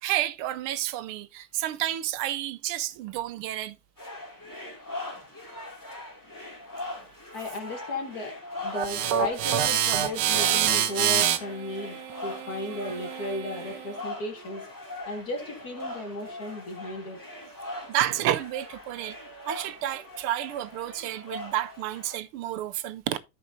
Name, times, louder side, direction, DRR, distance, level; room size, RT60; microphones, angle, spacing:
voice 1, 0.0-3.8 17.9-19.2 19.5-23.2, right 13 dB, 85° right, 1.5 m, -30 dB
sound 1, 4.0-22.1, left 2 dB, 10° left, 2.4 m, -41 dB
voice 2, 7.3-14.7 15.1-17.2, left 1 dB, 45° left, 2.1 m, -35 dB
sound 2, 8.7-13.9, right 10 dB, 65° right, 1.2 m, -27 dB
13.5 x 5.3 x 2.6 m
omnidirectional pair, 2.4 m